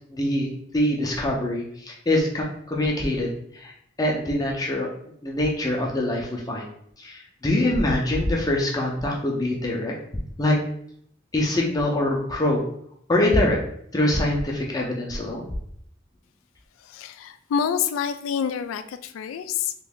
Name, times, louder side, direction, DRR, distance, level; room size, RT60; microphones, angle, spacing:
voice 1, 0.1-3.7 4.0-4.9 5.2-6.7 7.0-9.9 10.4-10.6 11.3-12.6 13.1-13.6 13.9-15.5, left 1 dB, 20° left, -2 dB, 0.5 m, -24 dB
voice 2, 16.8-19.7, left 7 dB, 90° left, 10 dB, 0.3 m, -27 dB
3.0 x 2.6 x 3.5 m, 0.69 s
head